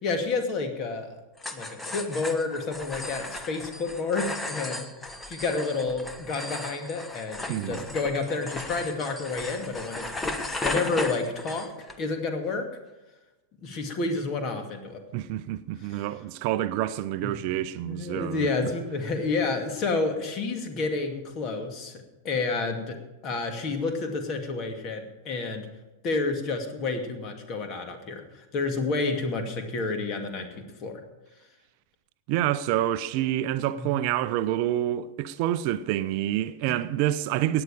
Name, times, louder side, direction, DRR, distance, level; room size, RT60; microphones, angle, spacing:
voice 1, 0.0-1.2 1.5-4.9 5.3-11.7 12.0-12.7 13.6-15.0 15.8-16.0 17.2-17.3 17.8-23.0 23.2-25.7 26.0-31.0 33.8-34.0 36.7-36.8, left 3 dB, 35° left, 2.4 m, -30 dB
sound 1, 1.4-12.0, left 2 dB, 10° left, 1.2 m, -36 dB
voice 2, 7.5-7.8 15.1-18.5 32.3-37.6, right 13 dB, 45° right, 0.6 m, -27 dB
17.0 x 9.8 x 5.0 m
figure-of-eight pair, 95°, 0 cm